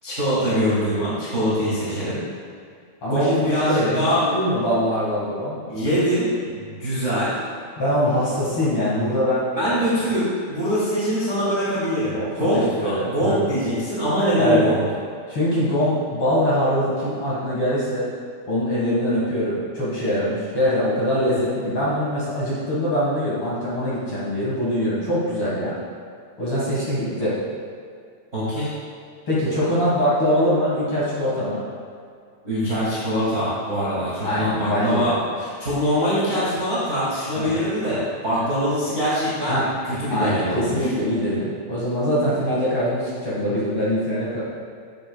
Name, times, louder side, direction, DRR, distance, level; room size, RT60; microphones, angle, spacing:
voice 1, 0.0-2.2 3.1-4.2 5.7-7.3 9.5-14.8 21.1-21.4 28.3-28.7 32.4-39.6 39.8-40.9, equal, 50° right, -10 dB, 0.8 m, -23 dB
voice 2, 3.0-5.6 7.8-9.9 12.1-12.5 12.8-13.3 14.4-14.6 15.3-18.1 18.5-25.8 26.4-27.4 29.3-31.6 34.2-35.1 37.3-37.6 38.4-38.5 39.5-39.7 40.1-44.4, equal, 45° left, -9 dB, 2.0 m, -23 dB
10.0 x 8.0 x 2.3 m, 2.2 s
omnidirectional pair, 4.6 m